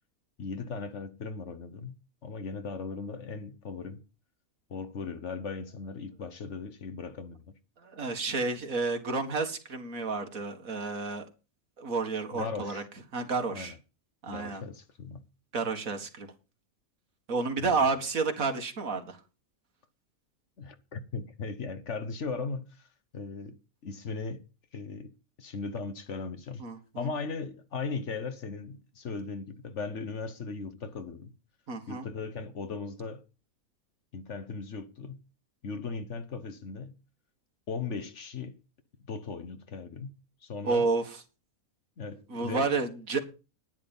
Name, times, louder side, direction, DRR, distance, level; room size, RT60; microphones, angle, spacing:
voice 1, 0.4-1.9 2.2-4.0 4.7-7.5 12.3-12.8 13.5-13.7 14.3-15.2 17.6-17.7 20.6-22.9 23.1-24.4 24.7-25.1 25.4-26.6 27.0-31.3 31.9-33.2 34.1-35.2 35.6-36.9 37.7-38.6 39.0-40.2 40.4-40.9 42.0-42.7, left 4 dB, 55° left, 1.3 m, -38 dB
voice 2, 7.8-11.3 11.8-12.8 13.1-13.7 14.2-14.6 15.5-16.3 17.3-19.2 26.6-27.1 31.7-32.1 40.6-41.2 42.3-43.2, right 4 dB, 65° right, 2.2 m, -30 dB
10.5 x 10.0 x 5.4 m
omnidirectional pair, 1.5 m